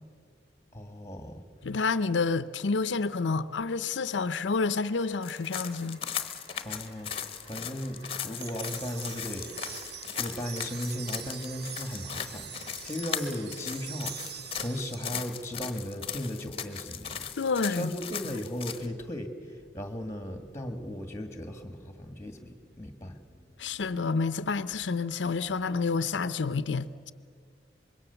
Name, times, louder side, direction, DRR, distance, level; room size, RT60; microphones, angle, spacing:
voice 1, 0.7-1.4 6.6-9.5 9.9-17.4 17.7-23.2, equal, 15° left, 1.9 m, -37 dB
voice 2, 1.6-6.0 17.4-17.9 23.6-27.1, left 4 dB, 90° left, 0.6 m, -29 dB
sound 1, 4.6-14.7, right 1 dB, 80° right, 7.9 m, -55 dB
sound 2, 5.2-18.9, left 8 dB, 30° left, 1.1 m, -38 dB
sound 3, 8.4-15.2, right 9 dB, 60° right, 0.8 m, -44 dB
25.0 x 22.0 x 7.0 m
head